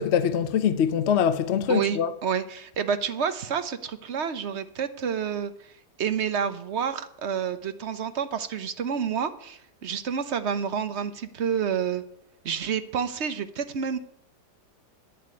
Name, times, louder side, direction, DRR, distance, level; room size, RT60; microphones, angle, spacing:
voice 1, 0.0-2.1, left 8 dB, 60° left, 0.7 m, -23 dB
voice 2, 1.7-5.5 6.0-12.0 12.4-14.0, right 7 dB, 50° right, 1.0 m, -29 dB
10.0 x 7.6 x 9.5 m
omnidirectional pair, 1.8 m